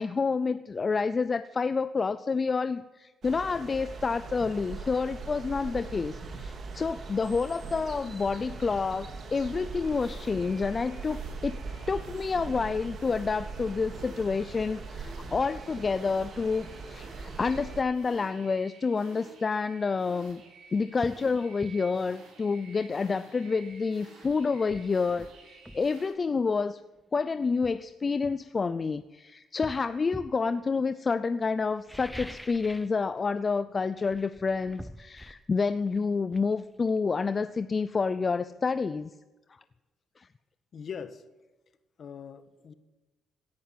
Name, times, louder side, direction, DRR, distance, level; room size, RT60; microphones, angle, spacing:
voice 1, 0.0-11.6 11.9-20.4 20.7-26.8 27.1-39.1 40.2-40.3, left 4 dB, 35° left, 13 dB, 0.5 m, -29 dB
sound 1, 3.2-17.8, right 4 dB, 50° right, 2.9 m, -41 dB
sound 2, 9.8-26.1, right 4 dB, 85° right, 6.3 m, -53 dB
sound 3, 21.0-21.3 21.6-21.8 23.7-23.8 24.2-25.9 27.0-27.1 27.6-29.0 29.6-30.4 31.7-33.0 33.2-33.6 33.9-37.5 37.8-37.9, equal, ahead, 0.8 m, -46 dB
voice 2, 40.7-41.2 42.0-42.7, left 7 dB, 55° left, 11 dB, 1.4 m, -41 dB
17.0 x 10.5 x 7.5 m, 1.1 s
cardioid pair, 90°, 0 cm